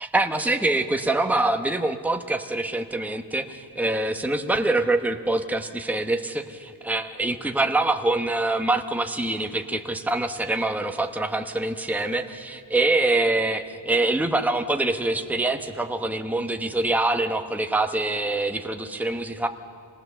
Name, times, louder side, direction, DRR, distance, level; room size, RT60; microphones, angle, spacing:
voice 1, 0.0-19.5, right 2 dB, 5° right, 6 dB, 0.9 m, -25 dB
26.0 x 18.5 x 6.9 m, 2.5 s
wide cardioid pair, 70°, 48 cm